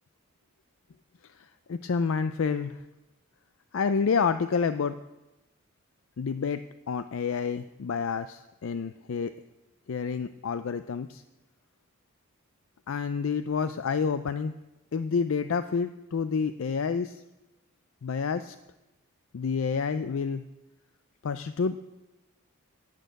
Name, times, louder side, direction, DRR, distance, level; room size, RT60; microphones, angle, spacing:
voice 1, 1.4-2.8 3.7-5.0 6.2-9.3 9.9-11.2 12.9-14.5 14.9-17.2 18.0-18.6 19.3-20.4 21.2-21.8, left 5 dB, 60° left, 11 dB, 0.4 m, -29 dB
12.0 x 6.5 x 9.2 m, 1.0 s
head